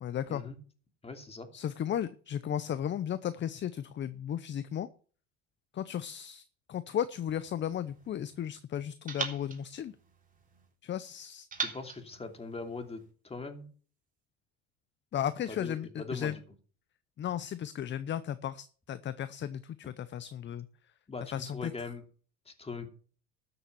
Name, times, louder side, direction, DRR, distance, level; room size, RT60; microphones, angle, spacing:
voice 1, 0.0-0.4 1.5-4.9 5.7-10.0 10.8-11.5 15.1-16.4 17.2-20.7 21.3-21.7, left 10 dB, 35° left, 15 dB, 0.7 m, -35 dB
voice 2, 1.0-1.5 11.6-13.7 15.6-16.3 21.1-21.2 21.5-22.0 22.5-22.9, left 4 dB, 20° left, 6 dB, 2.7 m, -41 dB
sound 1, 7.3-8.5 9.1-10.7 11.5-13.1, right 5 dB, 25° right, 3.6 m, -41 dB
13.0 x 7.1 x 7.0 m, 0.42 s
supercardioid pair, 90°, 32 cm